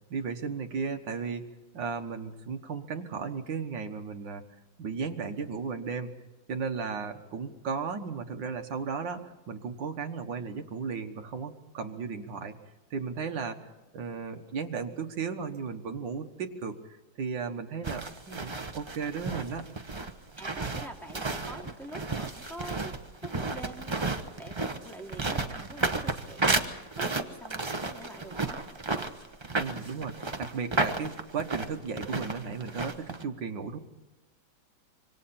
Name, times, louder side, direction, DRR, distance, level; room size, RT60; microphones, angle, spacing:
voice 1, 0.1-1.5 1.7-4.4 4.8-6.1 6.5-12.6 12.9-13.6 13.9-19.7 29.5-33.8, right 5 dB, 65° right, 5 dB, 2.0 m, -35 dB
sound 1, 17.8-33.2, right 3 dB, 30° right, 0.5 m, -32 dB
voice 2, 20.4-22.9 23.2-28.6, right 1 dB, ahead, -1 dB, 2.7 m, -46 dB
26.0 x 25.0 x 4.3 m, 1.1 s
omnidirectional pair, 2.2 m